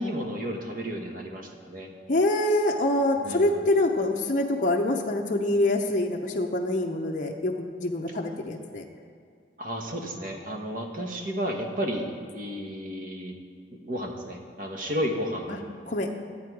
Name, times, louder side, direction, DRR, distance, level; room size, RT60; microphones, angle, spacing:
voice 1, 0.0-1.9 3.2-3.6 9.6-13.3 13.7-15.7, equal, 50° right, 3 dB, 1.1 m, -32 dB
voice 2, 2.1-8.8 15.5-15.6 15.9-16.3, left 1 dB, 45° left, 0 dB, 0.7 m, -25 dB
12.0 x 8.4 x 4.7 m, 2.2 s
head